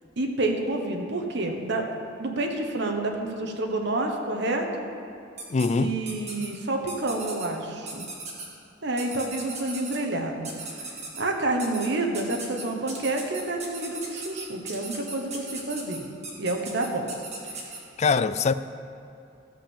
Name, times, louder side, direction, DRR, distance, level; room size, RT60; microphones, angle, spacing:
voice 1, 0.2-1.9 2.2-4.8 5.8-8.0 8.8-10.5 11.2-16.0 16.4-17.1, right 2 dB, 65° right, 2 dB, 1.2 m, -28 dB
sound 1, 5.4-5.7 6.1-6.5 6.9-7.5 7.9-8.5 9.0-10.0 10.4-11.2 11.6-11.9 12.1-17.8, right 3 dB, 35° right, 1.9 m, -37 dB
voice 2, 5.5-5.9 18.0-18.5, left 4 dB, 35° left, 13 dB, 0.4 m, -22 dB
15.0 x 5.5 x 7.1 m, 2.6 s
head